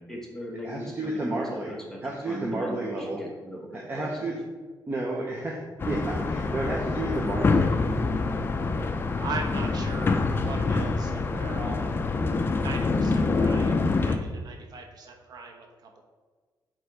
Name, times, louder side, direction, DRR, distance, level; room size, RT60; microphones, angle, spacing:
voice 1, 0.1-2.0 2.3-4.3, equal, 5° left, -2 dB, 1.2 m, -39 dB
voice 2, 0.6-3.2 3.7-4.3 4.9-7.8, right 2 dB, 25° right, -2 dB, 0.8 m, -31 dB
sound 1, 5.8-14.2, left 3 dB, 30° left, 0.5 m, -26 dB
voice 3, 9.2-12.0 12.6-16.0, right 4 dB, 60° right, 2 dB, 0.9 m, -39 dB
7.9 x 3.3 x 4.7 m, 1.4 s
wide cardioid pair, 155°, 8 cm